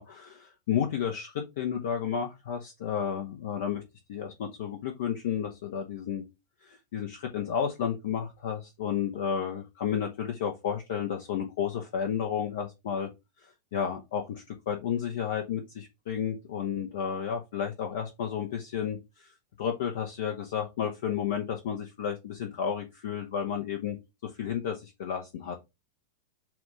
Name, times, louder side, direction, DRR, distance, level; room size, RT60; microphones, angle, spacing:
voice 1, 0.0-3.8 4.1-6.2 6.6-13.1 13.4-19.3 19.6-24.0 24.2-25.6, left 8 dB, 55° left, 3 dB, 1.1 m, -32 dB
7.6 x 2.7 x 5.0 m, 0.23 s
figure-of-eight pair, 90°, 0 cm